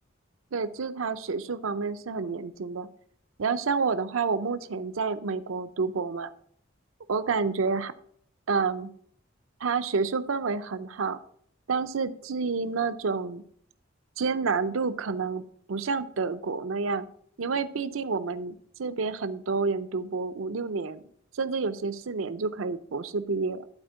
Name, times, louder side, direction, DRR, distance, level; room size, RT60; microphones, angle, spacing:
voice 1, 0.5-2.9 3.4-6.3 7.1-7.9 8.5-8.9 9.6-11.2 11.7-13.4 14.2-15.4 15.7-17.1 17.4-21.0 21.3-23.7, right 4 dB, 85° right, 12 dB, 0.6 m, -29 dB
11.5 x 4.3 x 5.6 m, 0.63 s
head